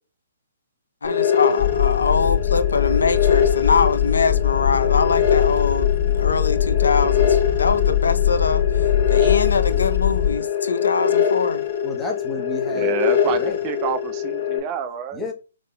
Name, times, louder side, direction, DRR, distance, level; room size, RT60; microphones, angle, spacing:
voice 1, 1.0-11.7, left 4 dB, 85° left, 0.6 m, -23 dB
sound 1, 1.0-14.6, left 8 dB, 60° left, 1.3 m, -23 dB
sound 2, 1.6-10.4, left 11 dB, 25° left, 1.5 m, -21 dB
voice 2, 11.8-12.9 13.3-13.6 15.1-15.3, left 2 dB, 5° left, 1.0 m, -31 dB
voice 3, 12.7-15.3, right 8 dB, 30° right, 0.4 m, -28 dB
3.8 x 3.6 x 2.2 m
hypercardioid pair, 145°, 0 cm